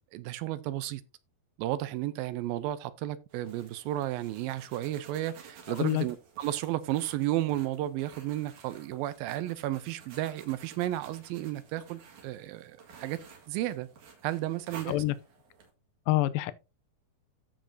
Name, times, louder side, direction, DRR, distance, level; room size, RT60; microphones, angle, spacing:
voice 1, 0.1-1.0 1.6-13.2 13.5-13.9 14.2-15.0, right 14 dB, 80° right, 2.4 m, -33 dB
sound 1, 3.3-15.7, right 6 dB, 60° right, 3.1 m, -53 dB
voice 2, 16.1-16.5, left 17 dB, 80° left, 2.3 m, -26 dB
15.0 x 5.2 x 2.7 m
omnidirectional pair, 4.3 m